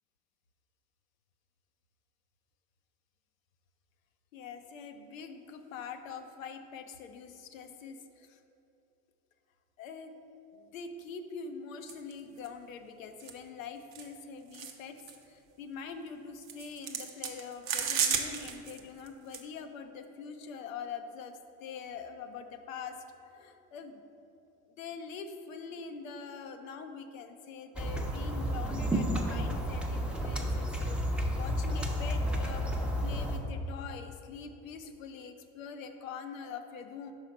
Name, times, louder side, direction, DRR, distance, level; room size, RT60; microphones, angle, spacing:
voice 1, 4.3-8.4 9.8-10.1 10.5-15.0 15.3-24.0 24.8-32.6 33.0-37.1, left 5 dB, 85° left, 7 dB, 0.6 m, -44 dB
sound 1, 11.9-12.1 12.4-12.5 13.2-13.3 13.9-14.1 14.5-14.7 15.0-15.2 16.4-18.8 19.1-19.4, right 7 dB, 85° right, 0.6 m, -33 dB
sound 2, 27.8-33.4, equal, 5° right, 0.6 m, -31 dB
5.6 x 4.5 x 4.9 m, 2.8 s
hypercardioid pair, 70°, 39 cm